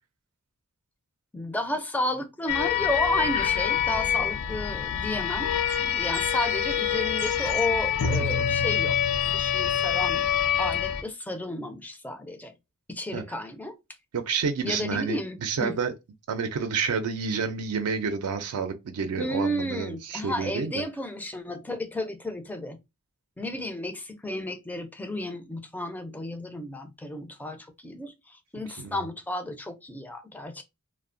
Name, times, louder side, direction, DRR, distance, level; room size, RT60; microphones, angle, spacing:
voice 1, 1.3-10.2 10.6-12.5 12.9-13.8 14.6-15.8 19.2-22.8 23.4-30.6, left 1 dB, 5° left, 0.4 m, -32 dB
sound 1, 2.5-11.0, left 8 dB, 85° left, 0.4 m, -26 dB
sound 2, 5.7-8.5, left 4 dB, 65° left, 0.8 m, -42 dB
voice 2, 14.1-15.9 16.3-20.8 28.8-29.1, right 5 dB, 80° right, 0.4 m, -29 dB
2.7 x 2.1 x 2.4 m
head